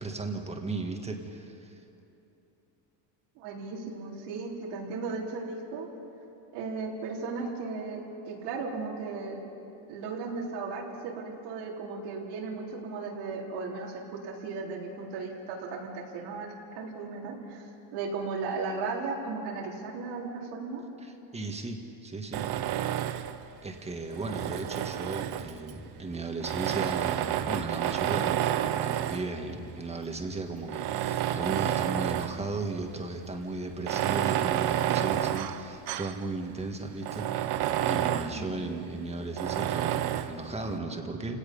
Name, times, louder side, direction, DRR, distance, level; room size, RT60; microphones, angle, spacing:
voice 1, 0.0-1.8 21.0-22.4 23.6-28.5 28.8-41.4, right 3 dB, 15° right, 3 dB, 1.7 m, -36 dB
voice 2, 3.4-5.9 6.5-8.0 8.3-9.4 9.9-17.6 17.9-20.8 38.3-38.7, right 4 dB, 90° right, -2 dB, 4.0 m, -36 dB
Tools, 22.3-23.4 24.1-25.7 26.4-29.3 30.0-30.1 30.7-32.4 32.8-32.9 33.7-36.2 36.6-36.7 37.0-38.4 39.4-40.4, right 11 dB, 50° right, 0.8 m, -29 dB
29.5 x 17.5 x 5.5 m, 2.9 s
cardioid pair, 145°, 49 cm